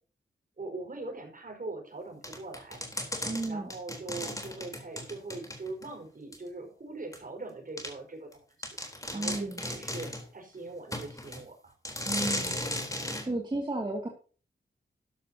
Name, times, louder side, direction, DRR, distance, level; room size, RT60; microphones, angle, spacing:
voice 1, 0.6-2.8 3.5-8.7 9.1-11.7 12.0-12.2, right 3 dB, 45° right, 2 dB, 5.0 m, -41 dB
sound 1, 2.2-5.9 6.3-6.4 7.1-7.2 7.8-7.9 8.3-8.4 8.6-10.3 10.9-11.4 11.8-13.3, left 1 dB, 15° left, 3.7 m, -36 dB
voice 2, 3.2-3.7 9.1-9.6 12.0-12.6 13.2-14.1, right 2 dB, 25° right, 0 dB, 2.5 m, -33 dB
13.0 x 12.0 x 2.9 m, 0.38 s
wide cardioid pair, 90°, 19 cm